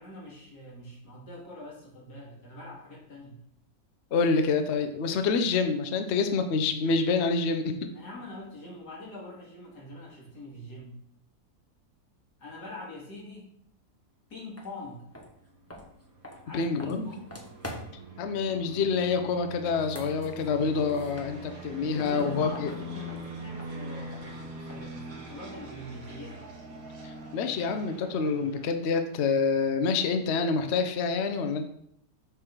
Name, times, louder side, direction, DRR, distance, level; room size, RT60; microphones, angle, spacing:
voice 1, 0.0-3.4 7.9-11.0 12.4-13.5 14.3-15.1 16.4-17.3 21.9-26.4, left 1 dB, 90° left, -4 dB, 2.7 m, -44 dB
voice 2, 4.1-7.9 16.5-17.1 18.2-22.7 27.0-31.7, left 4 dB, 55° left, 7 dB, 0.8 m, -27 dB
sound 1, 14.6-14.7 15.1-18.1 19.6-21.7 22.0-25.0, left 1 dB, 10° left, 0.8 m, -46 dB
sound 2, 15.4-28.7, right 1 dB, 65° right, 1.7 m, -43 dB
6.6 x 3.5 x 6.0 m, 0.70 s
omnidirectional pair, 1.7 m